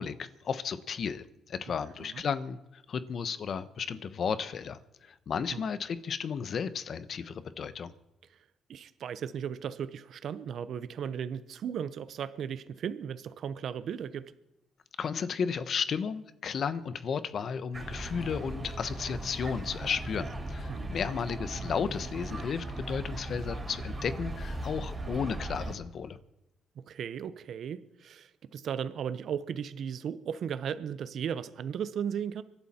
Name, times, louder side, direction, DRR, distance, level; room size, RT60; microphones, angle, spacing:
voice 1, 0.0-7.9 15.0-26.2, left 6 dB, 55° left, 14 dB, 0.9 m, -34 dB
voice 2, 1.7-2.2 5.5-5.6 8.3-8.4 8.7-14.3 20.7-20.9 26.9-32.4, right 8 dB, 65° right, 14 dB, 0.8 m, -36 dB
sound 1, 17.7-25.7, right 2 dB, 30° right, 4.4 m, -38 dB
25.0 x 11.5 x 4.3 m, 0.91 s
cardioid pair, 90°, 0 cm